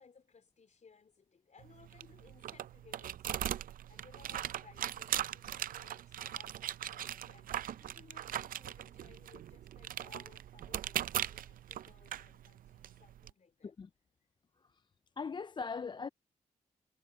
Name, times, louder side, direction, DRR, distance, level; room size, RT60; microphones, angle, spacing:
voice 1, 0.0-13.7 14.2-14.3, left 5 dB, 55° left, 3.4 m, -62 dB
sound 1, 1.6-13.3, right 11 dB, 80° right, 0.5 m, -40 dB
voice 2, 15.2-16.1, left 5 dB, 35° left, 0.3 m, -40 dB
cardioid pair, 50°, 14 cm